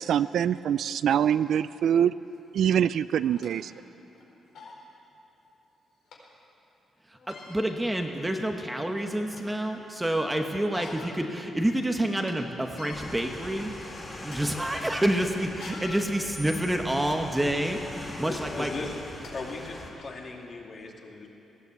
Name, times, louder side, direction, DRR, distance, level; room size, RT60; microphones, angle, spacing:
voice 1, 0.0-2.1 2.5-3.7, right 9 dB, 65° right, 15 dB, 0.3 m, -24 dB
sound 1, 2.4-2.5 3.1-3.6 4.1-4.2 4.5-4.8 6.1-6.2 7.1-7.6 8.3-8.4 8.9-9.6 10.5-11.2 11.6-11.7 12.1-12.3 12.7-13.0 13.6-13.8 14.2-14.4 15.4-17.2 17.8-18.0 18.8-18.9 19.2-19.3 20.0-20.1, left 4 dB, 70° left, 4.4 m, -45 dB
voice 2, 7.3-13.7 14.2-18.7, right 1 dB, 10° right, 4 dB, 1.0 m, -28 dB
sound 2, 12.9-19.9, left 1 dB, 20° left, 3.3 m, -42 dB
voice 3, 18.2-18.9 19.3-21.3, left 3 dB, 35° left, 0 dB, 2.5 m, -38 dB
19.5 x 16.0 x 8.3 m, 3.0 s
cardioid pair, 160°, 0 cm